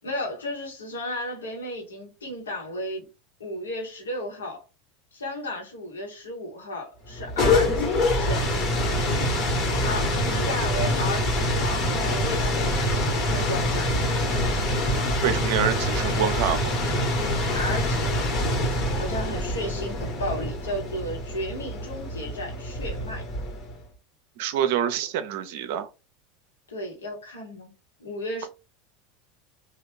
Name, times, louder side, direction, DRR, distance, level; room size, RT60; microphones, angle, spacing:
voice 1, 0.0-3.1 3.4-4.6 5.1-8.5 9.8-13.9 17.2-18.1 19.0-23.2 26.7-27.7 28.0-28.5, left 1 dB, 90° left, 1.1 m, -34 dB
sound 1, 7.1-23.8, left 1 dB, 45° left, 1.2 m, -25 dB
voice 2, 15.2-16.7 24.4-25.9, right 9 dB, 65° right, 0.5 m, -26 dB
3.1 x 2.3 x 3.3 m
hypercardioid pair, 85°, 0 cm